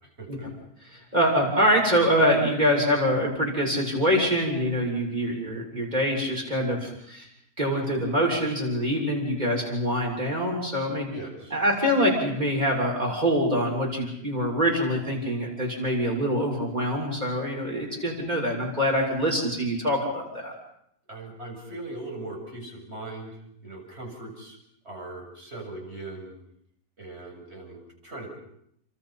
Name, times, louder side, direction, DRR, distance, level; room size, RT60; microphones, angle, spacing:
voice 1, 1.1-7.3 7.6-11.1 11.5-20.5, equal, 25° right, 0 dB, 7.2 m, -25 dB
voice 2, 11.1-11.6 21.1-23.3 23.6-24.6 24.8-26.3 27.0-28.4, right 2 dB, 40° right, 0 dB, 8.0 m, -39 dB
29.5 x 26.5 x 5.9 m, 0.73 s
omnidirectional pair, 1.7 m